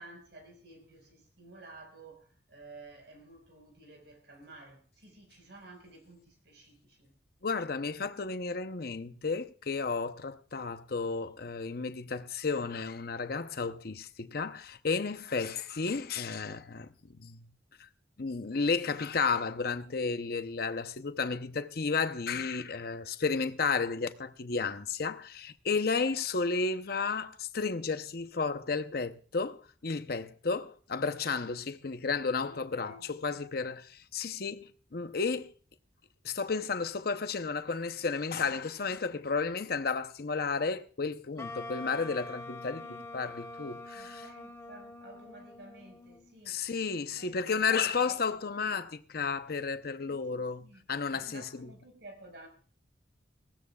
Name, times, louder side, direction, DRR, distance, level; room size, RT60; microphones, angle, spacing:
voice 1, 0.0-7.1 32.4-33.4 42.8-43.1 43.9-46.6 47.1-48.9 50.1-50.8 51.1-52.5, right 2 dB, 70° right, 4.8 m, -53 dB
voice 2, 7.4-17.5 18.2-35.5 36.2-42.8 43.1-44.2 46.5-51.7, left 4 dB, 55° left, 0.7 m, -33 dB
Wind instrument woodwind instrument, 41.4-46.4, left 2 dB, 15° left, 1.1 m, -45 dB
19.5 x 16.5 x 2.3 m
head